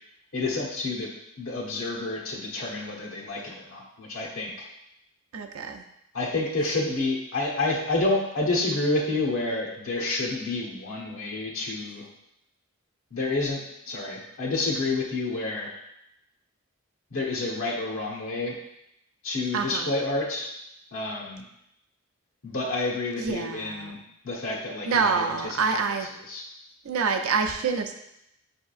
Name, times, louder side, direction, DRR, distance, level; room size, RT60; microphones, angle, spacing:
voice 1, 0.3-1.1 1.4-4.7 6.1-12.0 13.1-13.6 13.9-15.7 17.1-18.6 19.2-20.5 20.9-21.4 22.4-24.0 24.2-25.8 26.3-26.4, left 2 dB, 80° left, -3 dB, 1.1 m, -29 dB
voice 2, 5.3-5.8 19.5-19.9 23.2-24.0 24.9-26.1 26.8-27.9, right 5 dB, 90° right, 5 dB, 0.5 m, -27 dB
5.4 x 3.5 x 2.4 m, 0.81 s
head